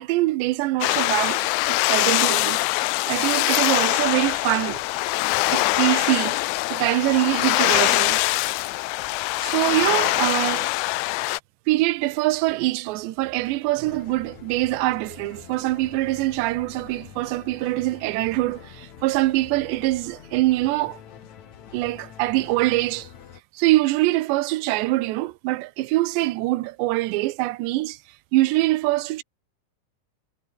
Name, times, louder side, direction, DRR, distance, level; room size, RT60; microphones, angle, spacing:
voice 1, 0.0-2.6 3.1-4.8 5.5-6.4 6.7-8.2 9.4-10.7 11.7-21.0 21.7-23.1 23.5-28.0 28.3-29.2, right 18 dB, 75° right, 2.8 m, -24 dB
sound 1, 0.8-11.4, left 21 dB, 85° left, 2.7 m, -23 dB
sound 2, 13.9-23.4, left 9 dB, 50° left, 2.3 m, -45 dB
omnidirectional pair, 5.9 m